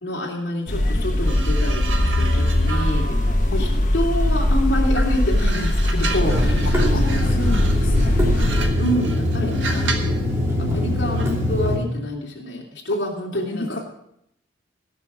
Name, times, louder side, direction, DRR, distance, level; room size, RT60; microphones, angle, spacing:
voice 1, 0.0-3.0 3.6-3.7 3.9-7.3 8.8-10.2 10.6-13.8, equal, 60° left, -2 dB, 3.1 m, -27 dB
sound 1, 0.7-8.6, left 1 dB, 40° left, 1.2 m, -20 dB
sound 2, 1.2-4.5 4.9-10.2 11.2-11.4, right 4 dB, 75° right, 1.5 m, -33 dB
Water tap faucet / Sink (filling or washing), 6.2-11.8, left 1 dB, 15° right, 3.1 m, -23 dB
voice 2, 6.6-8.2 10.6-10.9 13.3-13.8, left 2 dB, 80° left, -1 dB, 1.3 m, -32 dB
17.5 x 6.7 x 6.2 m, 0.75 s
head